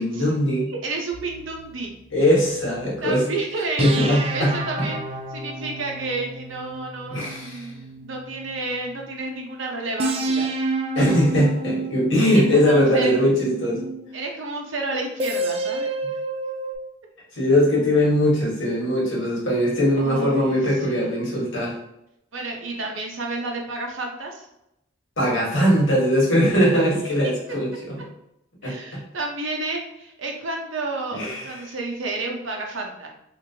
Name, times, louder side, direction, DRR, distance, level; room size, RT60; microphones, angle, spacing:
voice 1, 0.0-0.7 2.1-3.3 3.8-4.9 7.1-7.7 10.9-13.8 17.3-21.8 25.2-28.1 28.6-29.0 31.1-31.5, equal, 85° left, -4 dB, 1.2 m, -21 dB
voice 2, 0.7-1.9 3.0-3.9 4.3-5.0 5.3-10.5 12.3-13.1 14.1-15.9 20.0-21.2 22.3-24.5 26.6-27.6 28.6-33.1, right 3 dB, 85° right, 1 dB, 0.7 m, -31 dB
sound 1, 1.1-3.2 3.8-9.0 10.0-14.3 15.2-16.8, right 2 dB, 30° right, 0.3 m, -30 dB
3.0 x 2.5 x 2.7 m, 0.82 s
head